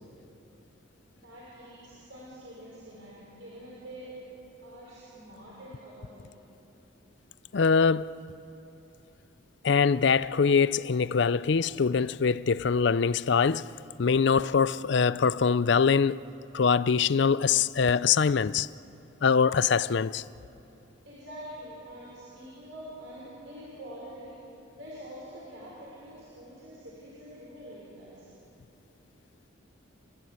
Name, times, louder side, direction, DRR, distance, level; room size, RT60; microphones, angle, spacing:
voice 1, 1.1-4.2 4.6-6.3 21.0-28.3, equal, 70° right, 5.6 m, -46 dB
voice 2, 7.5-8.2 9.6-13.7 14.0-16.2 16.5-18.7 19.2-20.2, left 5 dB, 60° left, 0.5 m, -23 dB
29.5 x 15.5 x 9.6 m
head